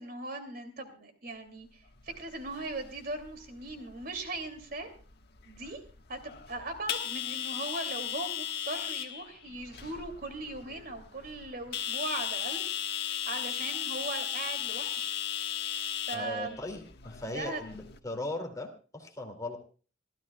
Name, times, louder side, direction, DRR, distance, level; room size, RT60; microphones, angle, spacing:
voice 1, 0.0-4.9 5.5-5.8 6.1-12.6 13.3-14.9 16.1-16.6 17.3-17.6, right 2 dB, 50° right, 7 dB, 2.7 m, -39 dB
sound 1, 1.9-18.0, left 10 dB, 60° left, 1.5 m, -37 dB
voice 2, 16.1-19.6, left 1 dB, 20° left, 3 dB, 2.5 m, -38 dB
26.5 x 14.0 x 2.3 m, 0.37 s
head